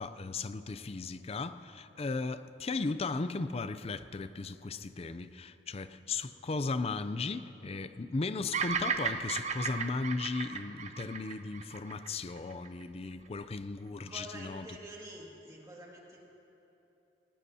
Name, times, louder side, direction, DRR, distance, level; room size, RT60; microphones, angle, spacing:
voice 1, 0.0-14.7, left 3 dB, 35° left, 12 dB, 0.5 m, -36 dB
Bird vocalization bird call bird song, 8.5-12.8, right 6 dB, 40° right, 0.7 m, -35 dB
voice 2, 14.1-16.2, right 1 dB, 20° right, -3 dB, 2.2 m, -48 dB
20.0 x 19.5 x 2.8 m, 3.0 s
head